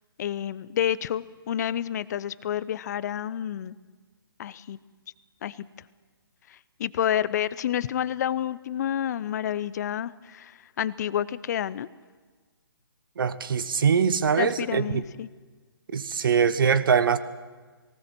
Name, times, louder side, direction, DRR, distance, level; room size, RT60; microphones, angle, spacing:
voice 1, 0.2-3.8 4.4-4.8 5.4-5.7 6.5-11.9 14.4-15.3, left 10 dB, 45° left, 18 dB, 0.7 m, -29 dB
voice 2, 13.2-15.0 15.9-17.2, right 6 dB, 60° right, 14 dB, 1.2 m, -23 dB
19.0 x 18.5 x 7.7 m, 1.4 s
figure-of-eight pair, 135°, 13 cm